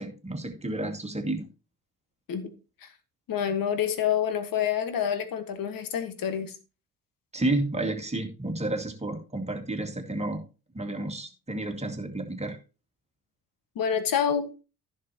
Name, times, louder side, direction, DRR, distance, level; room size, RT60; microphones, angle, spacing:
voice 1, 0.0-1.5 7.3-10.4 10.7-12.6, right 2 dB, 15° right, 2.3 m, -31 dB
voice 2, 3.3-6.6 13.7-14.5, left 8 dB, 50° left, 1.7 m, -27 dB
15.0 x 6.3 x 3.0 m
figure-of-eight pair, 45°, 45 cm